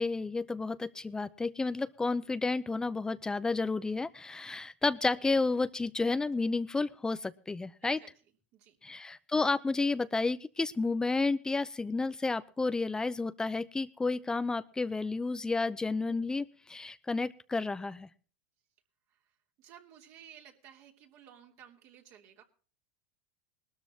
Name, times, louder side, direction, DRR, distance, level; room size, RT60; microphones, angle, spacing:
voice 1, 0.0-8.0 8.8-18.1, left 3 dB, 10° left, 15 dB, 0.7 m, -31 dB
voice 2, 19.1-22.4, right 9 dB, 50° right, 2 dB, 3.1 m, -55 dB
20.0 x 13.0 x 2.9 m, 0.40 s
hypercardioid pair, 110°, 6 cm